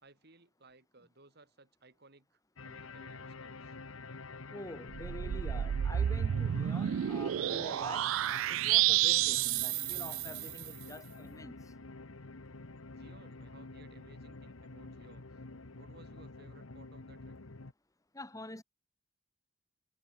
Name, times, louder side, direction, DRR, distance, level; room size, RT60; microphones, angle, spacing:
voice 1, 0.0-3.8 12.9-15.3 15.8-17.4, right 2 dB, 50° right, 3.2 m, -60 dB
sound 1, 2.6-17.7, left 3 dB, 80° left, 1.3 m, -48 dB
voice 2, 4.5-11.7 18.1-18.6, left 1 dB, 15° left, 2.1 m, -47 dB
sound 2, 4.9-10.7, right 12 dB, 75° right, 0.3 m, -30 dB
head